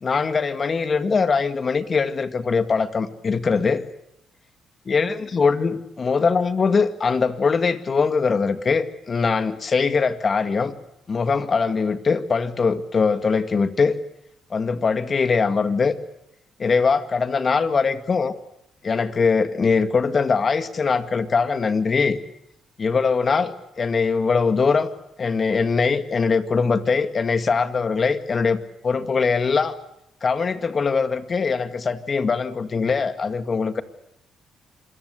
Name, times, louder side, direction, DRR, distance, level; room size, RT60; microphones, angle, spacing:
voice 1, 0.0-3.8 4.9-10.7 11.1-14.0 14.5-15.9 16.6-18.3 18.8-22.2 22.8-24.9 25.2-29.7 30.2-33.8, left 5 dB, 40° left, 10 dB, 2.0 m, -22 dB
26.5 x 21.5 x 8.3 m, 0.81 s
cardioid pair, 80°, 0 cm